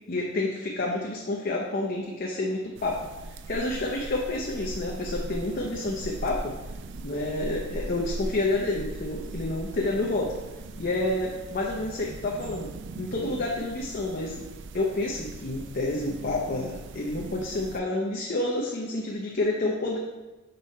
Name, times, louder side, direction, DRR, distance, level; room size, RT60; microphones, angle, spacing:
voice 1, 0.1-6.5 7.0-10.4 10.8-14.4 14.7-20.0, left 2 dB, 45° left, -2 dB, 0.7 m, -29 dB
sound 1, 2.8-17.8, right 2 dB, 60° right, 0.4 m, -40 dB
5.4 x 4.2 x 5.3 m, 1.1 s
head